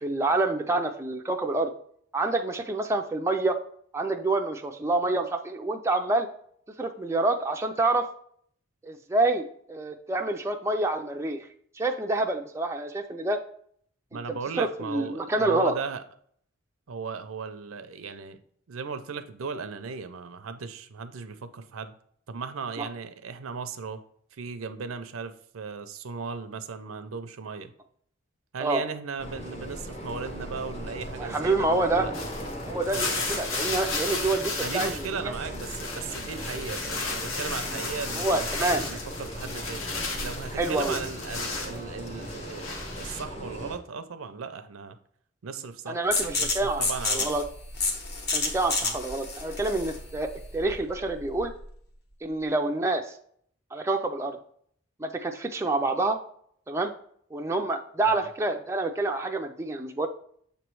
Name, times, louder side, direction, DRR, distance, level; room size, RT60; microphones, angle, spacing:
voice 1, 0.0-1.7 2.1-3.6 3.9-6.3 6.8-8.1 8.9-11.4 11.8-13.4 14.1-14.2 14.6-15.7 22.8-22.9 28.6-28.8 31.2-32.1 32.7-34.9 38.2-38.9 40.6-41.0 45.9-47.4 48.3-51.5 52.2-53.1 53.7-54.4 55.0-56.2 56.7-56.9 57.3-60.1, right 2 dB, 15° right, 3 dB, 0.3 m, -27 dB
voice 2, 14.1-16.0 16.9-18.4 18.7-21.9 22.3-24.0 24.3-27.7 28.5-32.2 32.9-33.6 34.6-39.9 40.2-45.0 45.4-47.3 48.8-48.9 58.1-58.3, right 5 dB, 80° right, 10 dB, 0.5 m, -37 dB
sound 1, 29.2-43.8, equal, 30° left, 0.8 m, -38 dB
sound 2, 32.1-35.1 35.4-41.8 42.2-43.2, left 3 dB, 70° left, 1.0 m, -34 dB
sound 3, 46.1-51.6, left 3 dB, 50° left, 1.1 m, -30 dB
6.7 x 3.1 x 4.6 m, 0.62 s
head